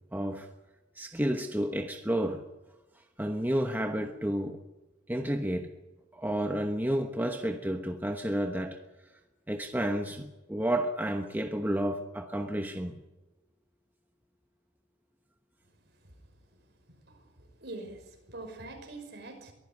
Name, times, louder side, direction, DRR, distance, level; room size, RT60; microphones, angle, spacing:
voice 1, 0.1-0.5 1.0-2.4 3.2-4.6 5.1-5.7 6.1-8.8 9.5-13.0, right 1 dB, 10° right, 1.0 m, -31 dB
voice 2, 17.1-19.5, right 2 dB, 60° right, 5.7 m, -44 dB
23.5 x 15.0 x 9.2 m
head